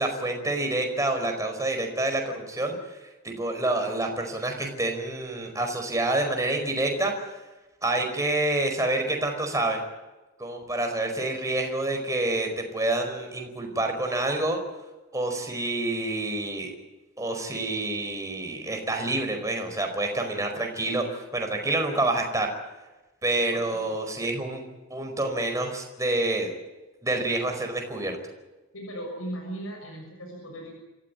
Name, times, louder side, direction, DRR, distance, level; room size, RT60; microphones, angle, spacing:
voice 1, 0.0-2.7 3.2-7.1 7.8-9.8 10.4-14.6 15.1-16.7 17.2-22.5 23.2-24.6 24.9-26.5 27.0-28.2, right 2 dB, 15° right, 4 dB, 4.9 m, -27 dB
voice 2, 23.5-24.0 28.7-30.7, right 1 dB, 75° left, 0 dB, 6.7 m, -38 dB
27.5 x 15.0 x 9.7 m, 1.1 s
head